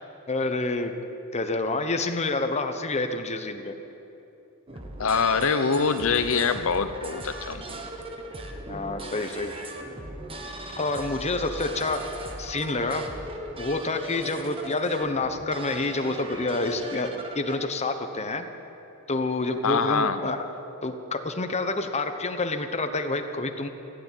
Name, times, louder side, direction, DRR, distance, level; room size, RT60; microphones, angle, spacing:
voice 1, 0.3-0.9 1.3-3.7 8.7-9.5 10.8-12.0 12.4-13.0 13.6-18.4 19.1-20.4 20.8-23.7, left 2 dB, 30° left, 7 dB, 1.0 m, -28 dB
sound 1, 4.7-17.6, right 1 dB, 25° right, 1.3 m, -38 dB
voice 2, 5.0-7.8 19.6-20.2, left 5 dB, 65° left, 11 dB, 0.7 m, -24 dB
15.5 x 9.9 x 9.1 m, 3.0 s
head